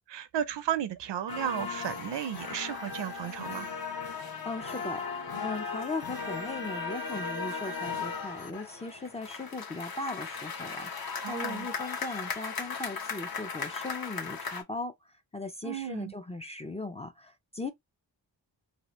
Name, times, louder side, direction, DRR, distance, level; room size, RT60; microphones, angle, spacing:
voice 1, 0.1-3.7 11.2-11.7 15.6-16.1, right 10 dB, 70° right, 0.6 m, -34 dB
sound 1, 1.3-14.6, left 5 dB, 55° left, 0.9 m, -37 dB
voice 2, 4.4-17.7, left 2 dB, 15° left, 0.4 m, -38 dB
2.8 x 2.4 x 3.0 m
cardioid pair, 85°, 44 cm